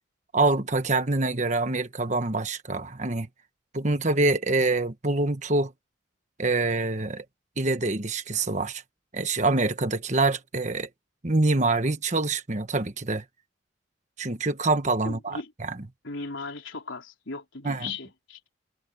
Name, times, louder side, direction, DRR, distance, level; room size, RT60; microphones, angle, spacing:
voice 1, 0.3-3.3 3.7-5.7 6.4-7.2 7.6-8.8 9.1-10.9 11.2-13.2 14.2-15.4 17.6-17.9, right 2 dB, 40° right, 1.4 m, -25 dB
voice 2, 15.0-15.5 16.0-18.4, left 3 dB, 90° left, 4.1 m, -37 dB
head